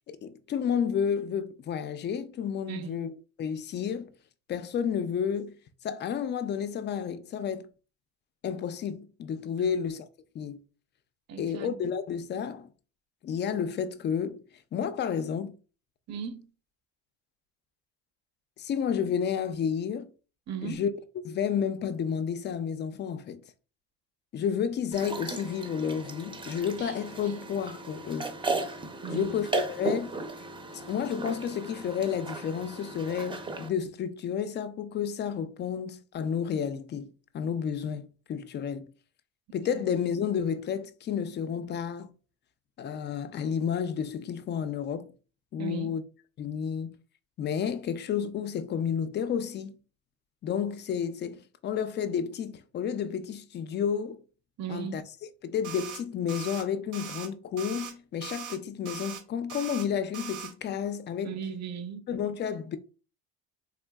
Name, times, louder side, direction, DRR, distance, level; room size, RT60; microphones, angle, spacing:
voice 1, 0.1-3.1 3.4-4.1 4.5-5.5 5.8-7.7 8.4-10.1 10.3-10.6 11.4-12.7 13.2-14.4 14.7-15.6 18.6-20.1 20.6-20.9 21.2-23.4 24.3-28.4 29.1-30.2 30.7-38.9 39.5-42.1 42.8-45.1 45.5-46.0 46.4-47.0 47.4-49.7 50.4-54.2 54.7-55.0 55.4-61.4 62.1-62.8, left 7 dB, 35° left, 0.4 m, -31 dB
voice 2, 2.7-3.0 9.6-9.7 11.3-11.8 16.1-16.5 20.5-20.8 29.0-29.5 39.7-39.8 45.6-45.9 54.6-55.0 61.2-62.0, right 7 dB, 50° right, 0.7 m, -37 dB
sound 1, 24.9-33.7, right 3 dB, 15° right, 0.6 m, -36 dB
sound 2, 26.8-28.6 28.8-28.9 29.3-29.4, right 6 dB, 90° right, 1.3 m, -53 dB
sound 3, 55.6-56.0 56.3-56.6 56.9-57.3 57.6-57.9 58.2-58.6 58.9-59.2 59.5-59.9 60.1-60.5, right 9 dB, 70° right, 1.0 m, -40 dB
3.7 x 2.5 x 2.3 m
supercardioid pair, 100°, 34 cm